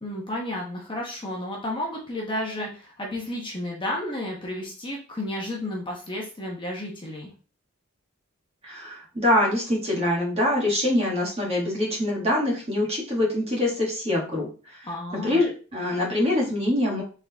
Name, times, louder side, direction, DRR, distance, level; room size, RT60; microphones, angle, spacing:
voice 1, 0.0-7.3 14.8-15.4, left 1 dB, 25° left, -2 dB, 1.0 m, -32 dB
voice 2, 8.6-17.0, left 1 dB, 30° right, -3 dB, 1.6 m, -24 dB
4.0 x 3.6 x 3.5 m, 0.37 s
head